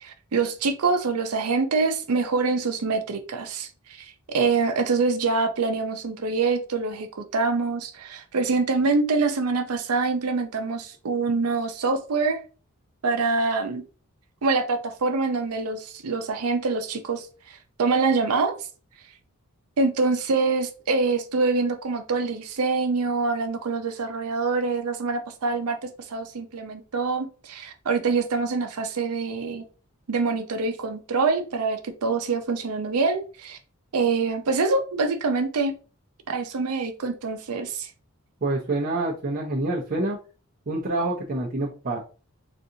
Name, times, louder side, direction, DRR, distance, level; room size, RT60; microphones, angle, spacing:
voice 1, 0.0-12.4 13.0-13.8 14.4-18.6 19.8-25.8 26.1-29.6 30.1-33.6 33.9-35.7 36.3-37.9, right 4 dB, 90° right, 7 dB, 0.6 m, -25 dB
voice 2, 38.4-40.2 40.7-42.0, right 2 dB, 40° right, -5 dB, 0.6 m, -27 dB
3.9 x 2.5 x 2.7 m, 0.36 s
head